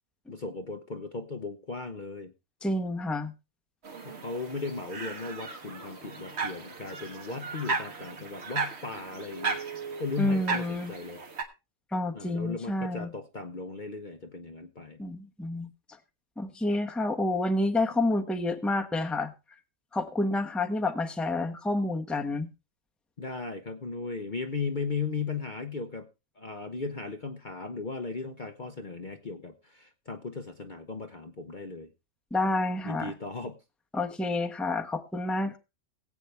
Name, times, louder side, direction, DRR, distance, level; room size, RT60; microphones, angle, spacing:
voice 1, 0.3-2.3 4.0-9.6 10.0-11.2 12.1-15.0 23.2-26.1 26.4-31.9 32.8-33.6, left 4 dB, 40° left, 0.9 m, -37 dB
voice 2, 2.6-3.3 10.2-10.9 11.9-13.1 15.0-15.7 16.4-19.3 19.9-22.5 32.3-33.1 33.9-35.6, left 2 dB, ahead, 0.9 m, -29 dB
sound 1, 3.8-11.4, right 4 dB, 50° right, 1.7 m, -36 dB
19.0 x 8.4 x 3.4 m
omnidirectional pair, 1.4 m